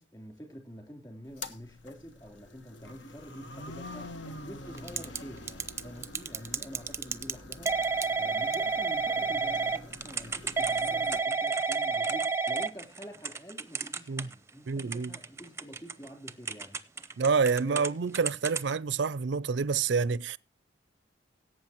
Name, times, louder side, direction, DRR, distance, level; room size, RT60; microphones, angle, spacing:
voice 1, 0.0-7.9 8.1-16.8 17.6-18.0, equal, 20° left, 3.4 m, -47 dB
sound 1, 1.2-11.2, left 2 dB, 75° left, 1.3 m, -46 dB
Typing / Telephone, 4.8-5.2 5.5-14.5 14.8-17.9 18.1-18.7, right 4 dB, 15° right, 0.6 m, -30 dB
voice 2, 14.7-15.1 17.2-20.4, right 5 dB, 65° right, 0.4 m, -28 dB
17.5 x 8.2 x 3.0 m
head